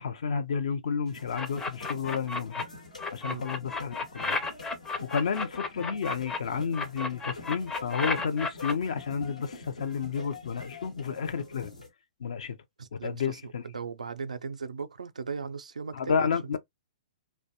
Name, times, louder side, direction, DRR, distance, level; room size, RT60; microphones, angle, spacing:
voice 1, 0.0-2.6 3.1-4.4 5.0-11.7 12.2-12.6 12.9-13.6 15.9-16.6, left 6 dB, 65° left, 0.5 m, -31 dB
sound 1, 1.1-11.9, left 3 dB, 85° left, 1.0 m, -46 dB
sound 2, 1.3-2.6 3.0-6.4 6.7-8.7, left 3 dB, 15° left, 0.5 m, -32 dB
voice 2, 12.8-16.3, right 5 dB, 80° right, 0.4 m, -38 dB
2.5 x 2.1 x 2.7 m
figure-of-eight pair, 115°, 4 cm